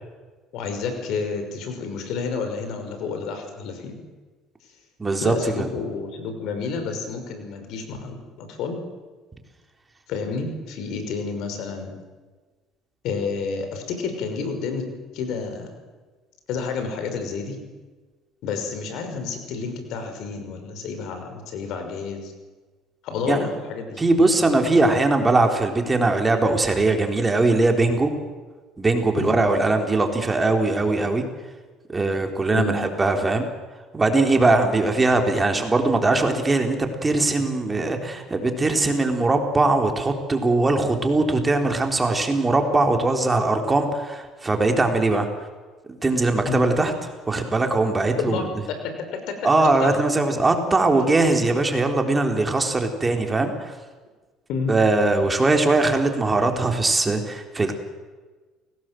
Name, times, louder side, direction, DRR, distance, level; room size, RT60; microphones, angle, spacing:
voice 1, 0.5-4.0 5.2-8.8 10.1-12.0 13.0-14.8 15.1-15.7 16.5-17.6 18.4-22.3 23.0-24.0 29.2-29.4 32.5-32.7 46.5-46.7 48.2-49.4 49.6-49.9 54.5-54.8, left 5 dB, 70° left, 6 dB, 5.8 m, -30 dB
voice 2, 5.0-5.7 23.3-23.4 24.0-28.1 28.8-31.2 31.9-33.5 33.9-45.3 46.0-46.9 47.3-48.4 49.4-53.7 54.7-57.7, right 2 dB, 20° right, 4 dB, 3.8 m, -21 dB
29.0 x 18.5 x 7.8 m, 1.3 s
supercardioid pair, 100°, 0 cm